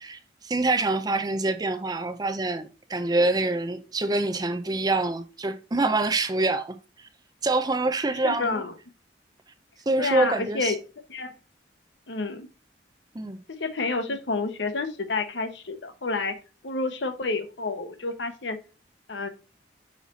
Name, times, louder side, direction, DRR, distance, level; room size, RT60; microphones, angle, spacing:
voice 1, 0.0-7.1 7.4-8.6 9.9-10.7 13.1-13.4, right 2 dB, 20° right, 0.5 m, -26 dB
voice 2, 8.2-8.7 10.0-10.8 11.1-11.3 12.1-12.5 13.5-16.4 16.6-18.6 19.1-19.3, left 3 dB, 80° left, 0.9 m, -29 dB
5.6 x 4.5 x 4.0 m
head